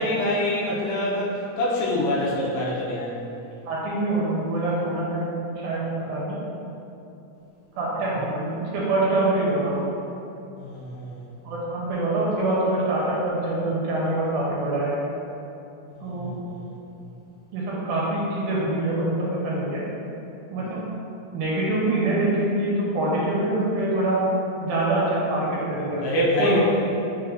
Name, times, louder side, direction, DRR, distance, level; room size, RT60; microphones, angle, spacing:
voice 1, 0.0-3.2 10.6-11.2 16.0-16.8 26.0-26.6, left 1 dB, 70° left, -6 dB, 1.6 m, -25 dB
voice 2, 3.7-6.4 7.8-9.9 11.4-15.0 16.0-16.3 17.5-19.8 20.5-20.8 21.3-24.2 24.6-26.0 26.4-26.6, right 2 dB, 90° right, -6 dB, 2.3 m, -25 dB
4.5 x 4.1 x 2.5 m, 2.8 s
omnidirectional pair, 3.5 m